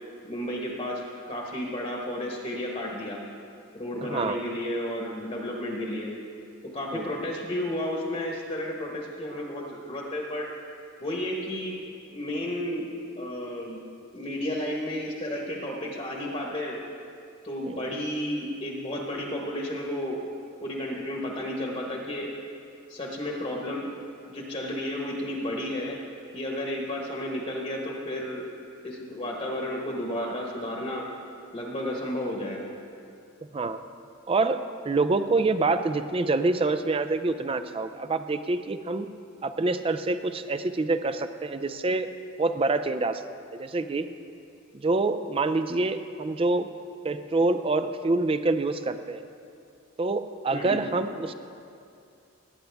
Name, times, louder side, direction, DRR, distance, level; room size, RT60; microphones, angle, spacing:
voice 1, 0.2-3.2 3.7-6.1 6.7-10.5 11.0-11.8 12.1-12.9 13.2-13.8 14.1-16.8 17.4-20.2 20.6-22.3 22.9-23.9 24.3-26.0 26.3-28.5 28.8-31.1 31.5-32.6 50.5-50.8, left 1 dB, 30° left, -1 dB, 1.2 m, -32 dB
voice 2, 4.0-4.4 6.9-7.1 17.6-17.9 33.5-33.8 34.3-39.1 39.4-42.1 42.4-43.2 43.5-44.1 44.7-46.7 47.0-49.2 50.0-51.3, right 3 dB, 25° right, 10 dB, 0.4 m, -26 dB
18.5 x 9.2 x 3.5 m, 2.5 s
head